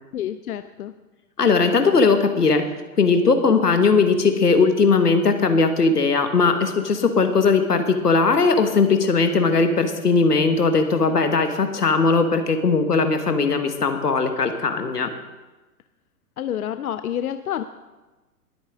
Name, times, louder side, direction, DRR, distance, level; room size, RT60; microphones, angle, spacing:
voice 1, 0.1-0.9 16.4-17.6, left 10 dB, 70° left, 11 dB, 0.7 m, -28 dB
voice 2, 1.4-2.6 3.0-15.1, left 4 dB, 90° left, 7 dB, 1.5 m, -19 dB
20.0 x 8.7 x 3.7 m, 1.1 s
hypercardioid pair, 115°, 46 cm